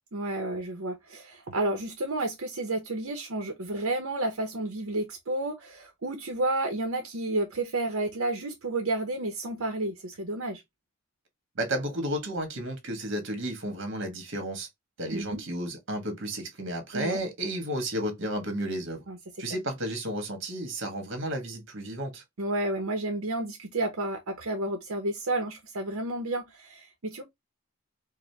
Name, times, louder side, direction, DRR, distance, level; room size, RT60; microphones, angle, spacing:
voice 1, 0.1-10.6 15.1-15.4 16.9-17.2 19.1-19.2 22.4-27.2, right 2 dB, 80° right, 0.8 m, -31 dB
voice 2, 11.5-14.7 15.0-19.0 19.4-22.2, right 1 dB, 60° right, 1.3 m, -32 dB
4.8 x 2.1 x 3.3 m
head